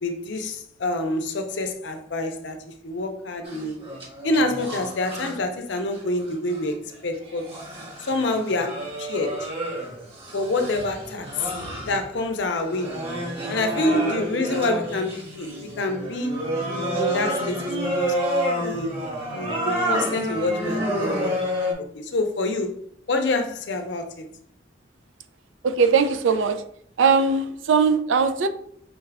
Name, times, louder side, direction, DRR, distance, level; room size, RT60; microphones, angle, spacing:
voice 1, 0.0-3.8 4.2-7.6 8.0-9.5 10.3-11.5 11.8-13.0 13.5-16.5 17.0-18.2 18.6-19.0 19.3-21.7 21.9-22.7 23.1-24.3, left 2 dB, 70° left, 0.6 m, -27 dB
sound 1, 3.4-5.4 5.7-6.6 7.3-12.1 12.6-21.7, equal, 30° right, 1.0 m, -29 dB
voice 2, 13.7-14.2 25.6-26.6 27.0-28.5, right 5 dB, 85° right, 0.4 m, -20 dB
5.2 x 2.4 x 3.3 m
head